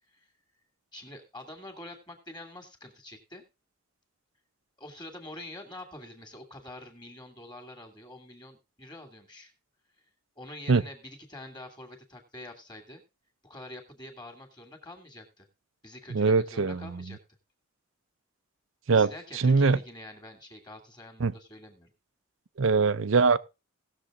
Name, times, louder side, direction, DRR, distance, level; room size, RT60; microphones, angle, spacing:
voice 1, 0.9-3.4 4.8-9.5 10.4-13.0 13.4-15.5 15.8-17.2 18.9-21.9, left 1 dB, 20° left, 2.5 m, -46 dB
voice 2, 16.1-17.0 18.9-19.8 21.2-21.3 22.6-23.4, right 4 dB, 70° right, 0.6 m, -23 dB
18.0 x 7.0 x 3.7 m
head